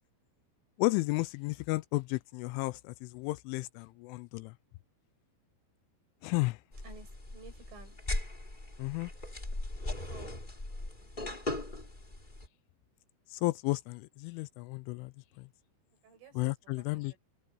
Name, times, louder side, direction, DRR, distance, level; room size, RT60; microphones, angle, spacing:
voice 1, 0.8-4.5 6.2-6.6 8.8-9.1 13.3-15.5 16.4-17.1, left 22 dB, 85° left, 2.9 m, -33 dB
sound 1, 6.7-12.5, left 2 dB, 15° left, 2.4 m, -38 dB
voice 2, 6.8-8.0 9.9-10.3 16.0-17.2, right 4 dB, 75° right, 10.5 m, -54 dB
open air
omnidirectional pair, 5.7 m